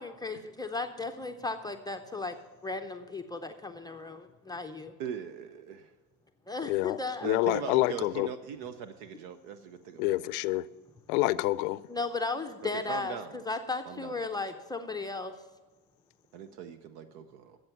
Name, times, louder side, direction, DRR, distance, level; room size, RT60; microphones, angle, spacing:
voice 1, 0.0-2.4 2.6-4.9 6.5-7.5 11.9-15.3, left 3 dB, 10° left, 0.6 m, -35 dB
voice 2, 5.0-5.9 7.2-10.3 12.7-13.3 13.9-14.1 16.3-17.6, right 7 dB, 60° right, 0.9 m, -40 dB
voice 3, 6.7-7.0 7.2-8.3 10.0-10.6 11.1-11.8, left 19 dB, 75° left, 0.5 m, -27 dB
13.0 x 7.8 x 5.8 m
supercardioid pair, 100°, 44 cm